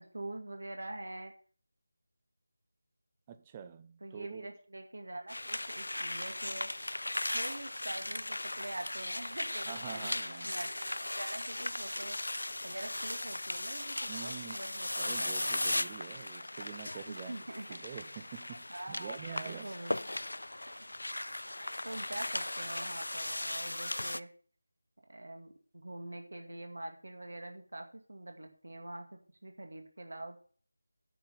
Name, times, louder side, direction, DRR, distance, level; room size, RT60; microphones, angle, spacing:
voice 1, 0.0-1.3 4.0-6.7 7.3-15.8 17.1-17.7 18.7-20.0 21.8-24.3 25.1-30.4, right 1 dB, 70° right, 2.2 m, -45 dB
voice 2, 3.3-4.5 9.7-10.5 14.1-14.7 15.0-17.3 17.7-19.7, right 8 dB, 20° right, 0.6 m, -46 dB
sound 1, 5.3-24.2, left 1 dB, 75° left, 0.4 m, -37 dB
9.4 x 5.7 x 6.9 m
figure-of-eight pair, 165°, 0 cm